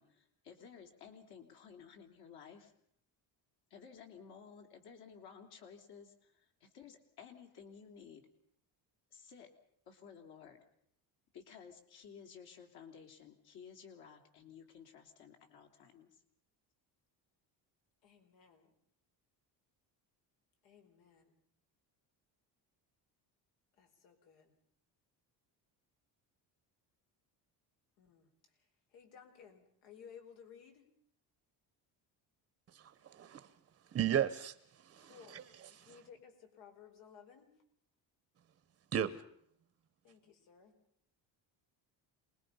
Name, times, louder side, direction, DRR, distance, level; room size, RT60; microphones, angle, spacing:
voice 1, 0.0-2.7 3.7-8.3 9.1-9.5 9.9-10.6 11.3-16.2, left 7 dB, 60° left, 3.4 m, -55 dB
voice 2, 18.0-18.7 20.6-21.4 23.8-24.5 28.0-28.3 28.9-30.8 35.0-37.5 40.0-40.7, left 7 dB, 85° left, 4.8 m, -58 dB
voice 3, 33.9-34.5 34.9-35.4 38.9-39.1, right 9 dB, 30° right, 0.8 m, -33 dB
27.5 x 20.5 x 5.6 m
cardioid pair, 170°, 42 cm